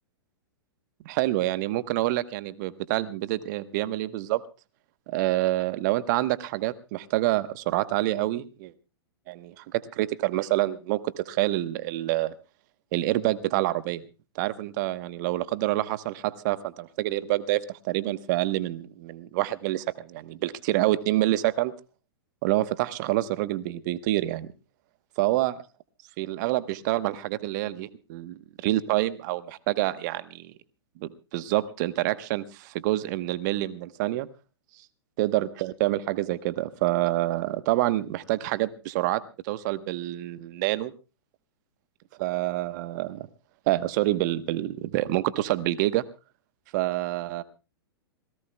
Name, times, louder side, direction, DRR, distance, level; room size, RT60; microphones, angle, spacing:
voice 1, 1.0-4.4 5.1-8.7 9.3-12.3 12.9-14.0 14.3-21.7 22.4-24.5 25.2-25.5 26.2-30.5 31.0-34.3 35.2-40.9 42.2-43.3 43.7-46.0 46.7-47.4, right 16 dB, 50° right, 14 dB, 1.0 m, -27 dB
27.5 x 17.5 x 2.2 m, 0.31 s
figure-of-eight pair, 105°, 13 cm